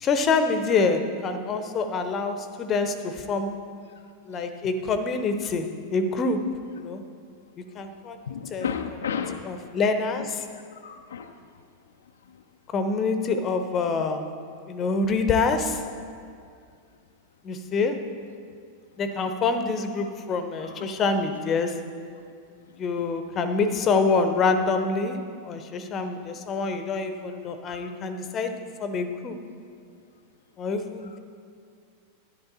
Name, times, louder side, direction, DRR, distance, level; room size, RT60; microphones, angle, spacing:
voice 1, 0.0-3.6 4.3-6.4 6.7-7.0 7.7-8.2 8.5-8.7 9.4-10.4 12.7-14.3 14.7-15.8 17.4-18.1 19.0-21.8 22.8-29.4 30.6-31.2, left 4 dB, 30° left, 9 dB, 0.8 m, -26 dB
voice 2, 8.3-9.4 10.8-11.3, left 7 dB, 65° left, 5 dB, 0.5 m, -31 dB
11.5 x 10.0 x 4.1 m, 2.3 s
figure-of-eight pair, 90°, 0 cm